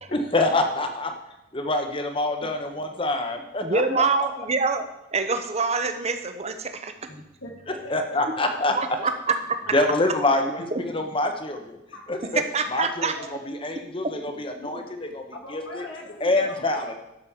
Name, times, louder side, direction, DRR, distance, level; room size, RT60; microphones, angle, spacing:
voice 1, 0.1-1.1 1.5-4.1 7.9-9.0 9.7-11.8 12.1-12.4 12.7-15.2 15.5-15.8 16.2-16.9, left 2 dB, 25° left, 6 dB, 1.1 m, -26 dB
voice 2, 3.6-6.9 8.8-9.6 12.5-13.1 14.0-14.3, right 4 dB, 30° right, 8 dB, 0.9 m, -26 dB
voice 3, 7.4-7.9 11.9-12.0 13.2-13.3 14.6-14.7 15.3-16.6, left 1 dB, 75° left, -1 dB, 3.1 m, -40 dB
12.0 x 5.3 x 7.2 m, 0.89 s
head